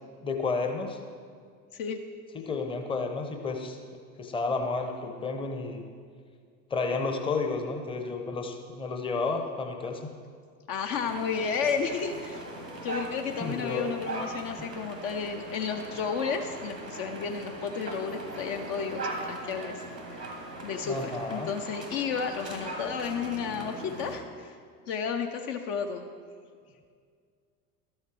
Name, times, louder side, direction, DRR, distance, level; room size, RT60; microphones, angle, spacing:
voice 1, 0.2-1.0 2.5-3.8 4.2-5.8 6.7-10.1 13.4-13.9 20.8-21.5, left 4 dB, 10° left, 5 dB, 0.8 m, -31 dB
voice 2, 10.7-12.4 12.8-20.3 20.6-24.6 24.9-26.1, left 6 dB, 45° left, 5 dB, 0.7 m, -32 dB
sound 1, 10.9-24.2, right 2 dB, 90° right, 1.4 m, -40 dB
12.5 x 6.5 x 4.6 m, 2.1 s
figure-of-eight pair, 75°, 47 cm